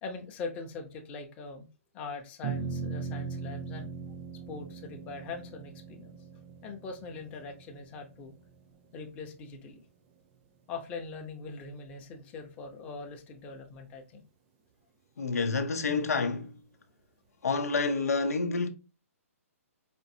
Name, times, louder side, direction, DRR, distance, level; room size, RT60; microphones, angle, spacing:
voice 1, 0.0-1.7 1.9-3.9 4.5-6.2 6.6-8.3 8.9-9.8 10.7-14.2, left 4 dB, 15° left, 0.6 m, -42 dB
sound 1, 2.4-9.0, right 4 dB, 30° right, 0.6 m, -39 dB
voice 2, 15.2-16.5 17.4-18.7, left 4 dB, 90° left, 0.7 m, -28 dB
5.1 x 2.5 x 2.6 m
hypercardioid pair, 160°, 8 cm